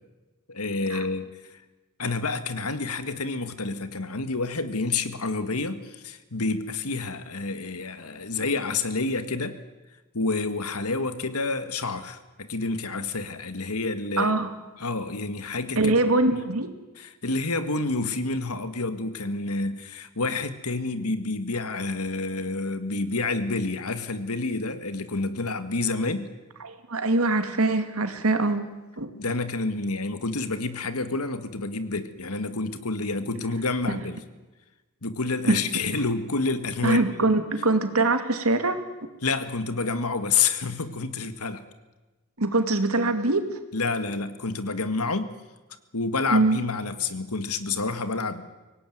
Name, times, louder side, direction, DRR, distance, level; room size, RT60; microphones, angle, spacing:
voice 1, 0.5-1.6 2.0-9.6 10.1-14.3 14.8-16.0 16.3-16.4 17.0-26.3 29.1-34.2 35.0-37.3 39.2-41.6 43.7-45.4 45.9-48.4, left 3 dB, 85° left, 10 dB, 1.9 m, -29 dB
voice 2, 14.2-14.5 15.8-16.7 26.6-28.7 29.0-29.1 33.9-34.0 35.5-35.6 36.8-38.8 42.4-43.4 46.3-46.6, right 2 dB, 75° right, 8 dB, 2.4 m, -23 dB
24.0 x 18.5 x 9.4 m, 1.2 s
head